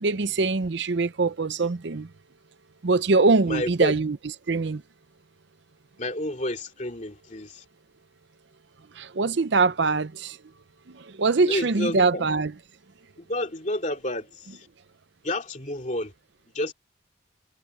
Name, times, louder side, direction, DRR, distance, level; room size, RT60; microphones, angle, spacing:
voice 1, 0.0-2.1 2.8-4.2 4.5-4.8 9.0-10.4 10.9-12.5, right 3 dB, 60° right, 0.6 m, -23 dB
voice 2, 3.5-3.9 6.0-7.6 11.5-12.2 13.2-14.7 15.2-16.1 16.5-16.7, left 1 dB, 35° left, 2.9 m, -30 dB
head